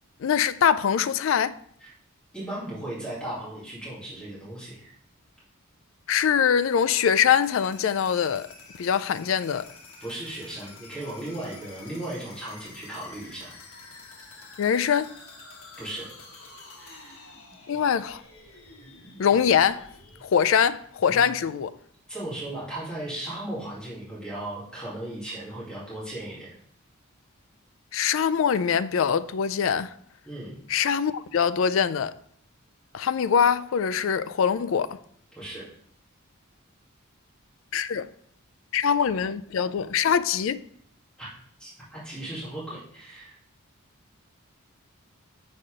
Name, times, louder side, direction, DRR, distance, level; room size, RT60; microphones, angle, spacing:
voice 1, 0.2-1.6 6.1-8.5 8.8-9.7 14.6-15.1 17.7-18.2 19.2-19.9 20.2-21.7 27.9-29.9 30.7-32.2 32.9-35.0 37.7-38.1 38.7-40.6, left 7 dB, 60° left, 0.3 m, -23 dB
voice 2, 2.3-4.9 10.0-13.5 15.8-16.1 16.8-17.2 21.1-21.2 22.1-26.5 30.2-30.5 35.4-35.6 41.2-41.3 41.6-43.3, right 1 dB, 5° left, 2.5 m, -36 dB
sound 1, 7.3-21.1, left 3 dB, 90° left, 1.3 m, -48 dB
7.6 x 4.2 x 4.9 m
head